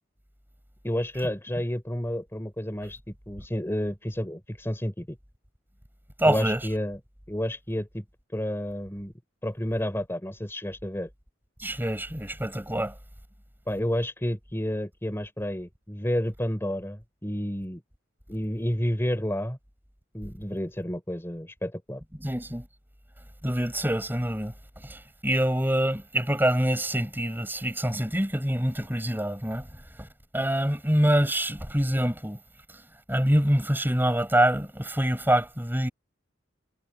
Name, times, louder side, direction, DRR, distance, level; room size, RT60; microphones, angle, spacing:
voice 1, 0.8-5.2 6.3-7.0 7.3-8.0 8.3-9.1 9.4-11.1 13.7-17.8 18.3-19.6 20.1-22.0, equal, 15° left, 3.4 m, -30 dB
voice 2, 6.2-6.6 11.6-12.9 22.2-22.7 23.4-30.1 30.3-32.4 33.1-35.9, right 1 dB, 10° right, 7.0 m, -25 dB
head